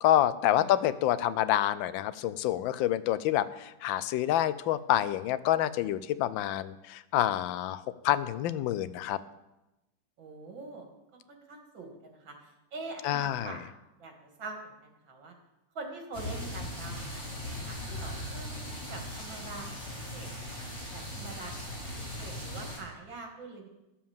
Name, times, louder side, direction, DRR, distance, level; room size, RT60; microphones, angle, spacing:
voice 1, 0.0-9.2 13.0-13.6, left 12 dB, 85° left, 15 dB, 1.3 m, -27 dB
voice 2, 10.2-10.9 11.3-12.4 12.7-13.6 14.0-14.1 14.4-15.3 15.8-19.7 19.9-20.5 20.9-23.7, right 3 dB, 80° right, 3 dB, 2.6 m, -44 dB
sound 1, 16.1-22.8, left 1 dB, 45° left, 5.0 m, -39 dB
11.5 x 7.2 x 7.1 m, 0.99 s
omnidirectional pair, 2.1 m